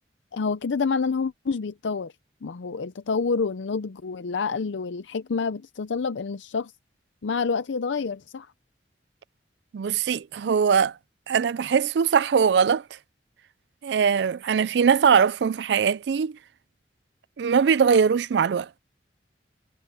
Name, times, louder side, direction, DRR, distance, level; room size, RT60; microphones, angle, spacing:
voice 1, 0.3-2.1 2.4-6.7 7.2-8.5, left 5 dB, 85° left, 0.5 m, -28 dB
voice 2, 9.7-10.9 11.3-12.8 13.8-16.4 17.4-18.7, right 6 dB, 65° right, 0.4 m, -21 dB
head